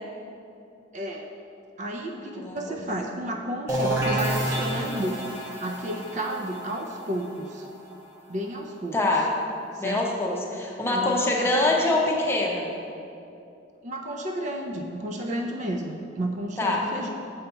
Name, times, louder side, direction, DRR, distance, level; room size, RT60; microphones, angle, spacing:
voice 1, 0.9-1.3 1.8-5.3 5.6-7.7 8.3-9.0 9.7-10.0 10.9-11.5 13.8-17.1, right 1 dB, 40° right, 3 dB, 0.4 m, -32 dB
voice 2, 2.3-2.8 8.9-9.3 9.8-12.7 16.6-16.8, left 2 dB, 15° left, -2 dB, 0.7 m, -24 dB
sound 1, 3.7-9.3, right 1 dB, 15° right, 1.1 m, -30 dB
6.8 x 4.1 x 5.5 m, 2.6 s
head